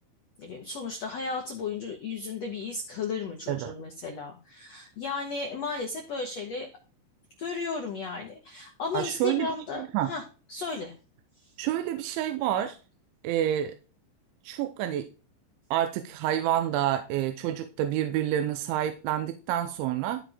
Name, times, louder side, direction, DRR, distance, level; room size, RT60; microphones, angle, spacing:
voice 1, 0.4-6.7 7.4-10.2 10.5-10.9, left 4 dB, 85° left, 3 dB, 1.4 m, -34 dB
voice 2, 8.9-10.1 11.6-12.8 13.2-13.7 14.4-15.1 15.7-20.2, right 11 dB, 85° right, 9 dB, 3.2 m, -28 dB
14.0 x 5.1 x 5.0 m, 0.34 s
omnidirectional pair, 5.3 m